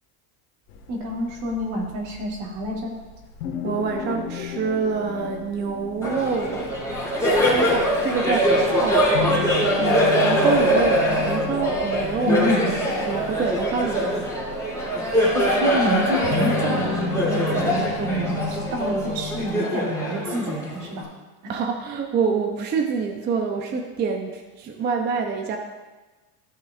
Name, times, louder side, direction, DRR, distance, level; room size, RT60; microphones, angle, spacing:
sound 1, 0.7-19.5, left 5 dB, 85° left, 1.6 m, -33 dB
voice 1, 0.9-2.9 12.2-12.7 15.3-21.1 21.4-21.5, right 1 dB, 65° right, -1 dB, 2.5 m, -27 dB
voice 2, 3.6-6.7 7.2-9.1 9.8-12.5 13.0-14.3 21.5-25.6, right 5 dB, 25° right, 4 dB, 0.5 m, -26 dB
Laughter, 6.0-21.0, equal, 5° left, 2.8 m, -23 dB
14.0 x 6.6 x 2.4 m, 1.2 s
supercardioid pair, 140°, 48 cm